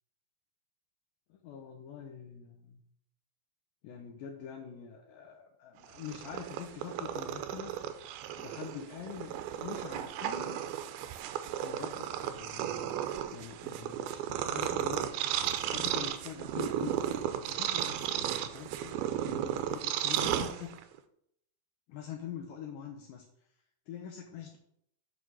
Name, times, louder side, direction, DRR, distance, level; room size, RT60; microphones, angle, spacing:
voice 1, 1.3-2.8 3.8-7.8 8.4-10.6 11.6-13.0 13.3-15.1 15.7-17.0 17.5-20.7 21.9-23.3 23.9-24.6, left 8 dB, 75° left, 1 dB, 2.4 m, -45 dB
Purr, 5.8-21.0, right 11 dB, 90° right, 2.6 m, -34 dB
7.7 x 5.6 x 6.3 m, 0.71 s
omnidirectional pair, 4.4 m